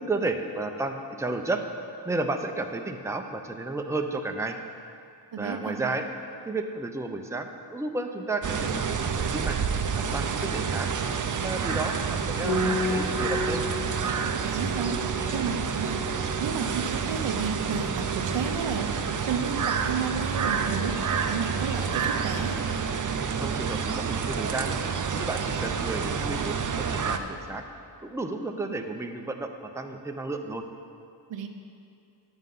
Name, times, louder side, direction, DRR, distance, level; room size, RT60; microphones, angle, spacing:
voice 1, 0.0-1.6 2.0-4.5 5.4-6.1 6.5-9.6 10.0-10.9 11.4-13.6 15.2-15.3 23.4-24.8 25.1-26.5 26.9-27.7 28.0-30.6, right 2 dB, 5° right, 4 dB, 0.6 m, -32 dB
voice 2, 5.3-5.9 14.4-15.0 15.3-16.0 16.4-18.9 19.2-22.6 31.3-31.5, right 6 dB, 80° right, 6 dB, 0.9 m, -32 dB
sound 1, 8.4-27.2, right 6 dB, 45° right, 0.7 m, -29 dB
Piano, 12.4-21.8, left 1 dB, 25° left, 2.6 m, -35 dB
9.6 x 8.0 x 5.5 m, 2.5 s
cardioid pair, 85°, 44 cm